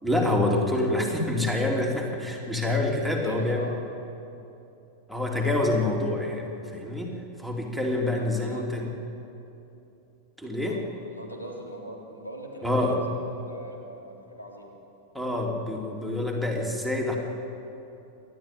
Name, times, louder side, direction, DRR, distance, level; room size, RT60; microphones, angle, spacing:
voice 1, 0.0-3.7 5.1-6.5 6.7-8.9 10.4-10.8 12.6-13.0 15.1-17.2, left 2 dB, ahead, 0 dB, 3.4 m, -26 dB
voice 2, 3.2-3.8 5.5-5.7 8.2-8.7 10.7-14.7, equal, 80° left, 0 dB, 3.5 m, -41 dB
29.5 x 12.5 x 9.2 m, 2.8 s
figure-of-eight pair, 90°, 0 cm